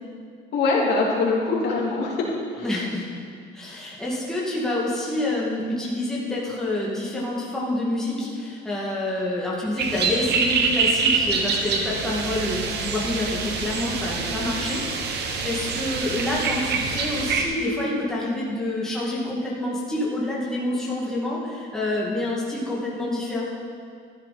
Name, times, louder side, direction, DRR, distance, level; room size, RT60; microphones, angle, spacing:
voice 1, 0.5-2.7, left 3 dB, 55° left, -4 dB, 2.9 m, -23 dB
voice 2, 2.5-3.1 3.5-14.8 15.1-23.4, left 1 dB, 5° left, -6 dB, 2.2 m, -27 dB
sound 1, 9.8-17.4, right 5 dB, 55° right, 1.3 m, -25 dB
14.0 x 11.5 x 4.3 m, 2.2 s
cardioid pair, 165°, 21 cm